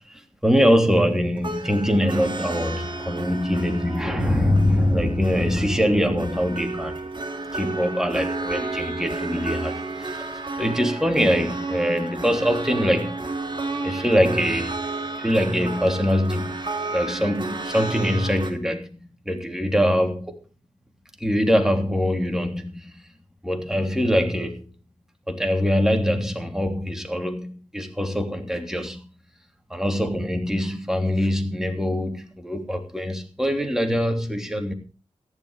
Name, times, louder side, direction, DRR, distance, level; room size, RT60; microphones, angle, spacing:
voice 1, 0.0-7.1 7.5-13.2 13.8-14.9 15.2-16.5 16.9-20.4 21.2-23.0 23.4-24.7 25.3-29.0 29.7-34.7, equal, 5° right, 3.1 m, -23 dB
sound 1, 1.4-18.5, right 3 dB, 40° right, 3.0 m, -31 dB
14.5 x 11.0 x 5.0 m
cardioid pair, 55°, 12 cm